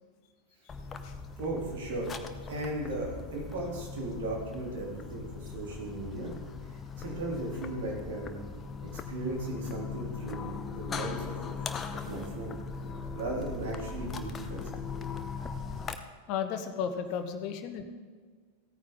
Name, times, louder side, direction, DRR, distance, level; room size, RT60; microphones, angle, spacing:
sound 1, 0.7-16.0, left 5 dB, 20° left, 0.7 m, -39 dB
voice 1, 1.4-2.2 2.5-6.3 7.0-8.4 8.8-11.6 12.0-12.6 13.1-14.8, right 2 dB, 55° right, -2 dB, 3.0 m, -36 dB
voice 2, 16.3-17.8, left 7 dB, 40° left, 8 dB, 1.1 m, -34 dB
16.0 x 9.2 x 3.8 m, 1.5 s
figure-of-eight pair, 90°, 0 cm